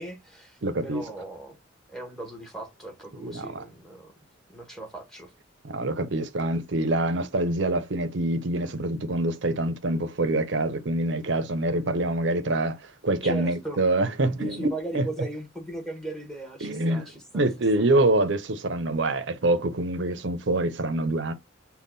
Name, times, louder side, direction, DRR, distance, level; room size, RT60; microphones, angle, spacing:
voice 1, 0.0-1.6 1.9-4.1 4.5-5.3 13.2-13.8 14.3-17.5 17.8-17.9, right 1 dB, ahead, 1.2 m, -37 dB
voice 2, 0.6-1.0 3.2-3.6 5.6-14.7 14.9-15.1 16.6-17.0 17.3-21.3, right 2 dB, 60° right, 0.7 m, -25 dB
5.4 x 2.3 x 4.0 m
head